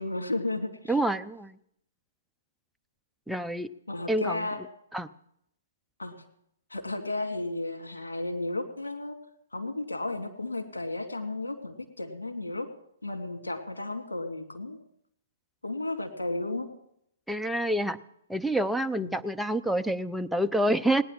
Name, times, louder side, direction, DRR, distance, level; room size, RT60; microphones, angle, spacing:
voice 1, 0.0-0.7 3.9-4.6 6.0-6.2 6.7-9.2 9.5-12.7 13.0-14.8 15.6-16.7 19.0-19.2, left 2 dB, 85° left, 4 dB, 2.4 m, -33 dB
voice 2, 0.9-1.6 3.3-3.7 4.1-4.5 4.9-5.1 17.3-18.0 18.3-21.0, right 1 dB, ahead, 7 dB, 0.6 m, -27 dB
18.0 x 9.7 x 7.4 m, 0.74 s
figure-of-eight pair, 125°, 0 cm